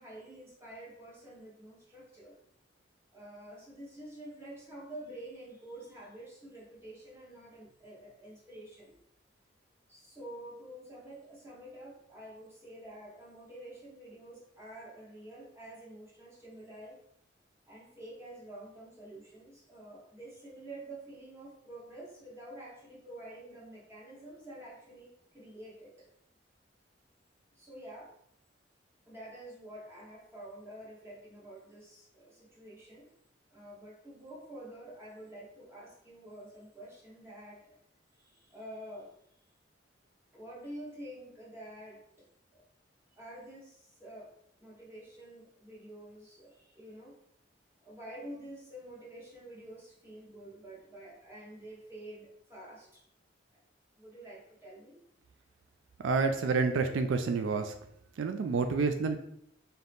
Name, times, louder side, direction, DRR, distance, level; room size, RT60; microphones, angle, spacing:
voice 1, 0.0-2.4 3.1-9.0 9.9-17.0 17.7-26.1 27.5-28.1 29.1-33.1 33.5-37.8 38.1-39.1 40.3-42.3 42.5-42.6 43.2-44.3 44.6-47.1 47.8-53.0 54.0-55.0, right 1 dB, 15° right, -5 dB, 1.2 m, -48 dB
voice 2, 56.0-57.7 58.2-59.2, right 4 dB, 80° right, 7 dB, 0.3 m, -28 dB
3.9 x 2.8 x 3.4 m, 0.72 s
head